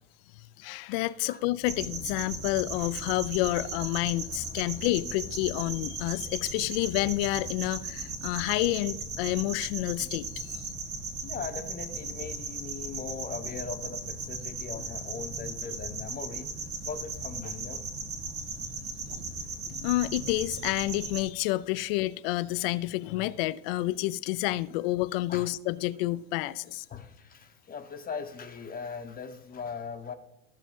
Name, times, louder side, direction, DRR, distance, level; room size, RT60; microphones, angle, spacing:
voice 1, 0.4-10.6 19.1-19.2 19.7-26.9, left 17 dB, 65° left, 0.4 m, -29 dB
sound 1, 1.6-21.2, right 3 dB, 90° right, 1.7 m, -37 dB
voice 2, 11.2-16.5 16.8-17.8 24.7-24.8 25.3-25.5 26.9-30.1, left 6 dB, 30° left, 0.8 m, -40 dB
13.5 x 6.9 x 3.7 m
hypercardioid pair, 80°, 31 cm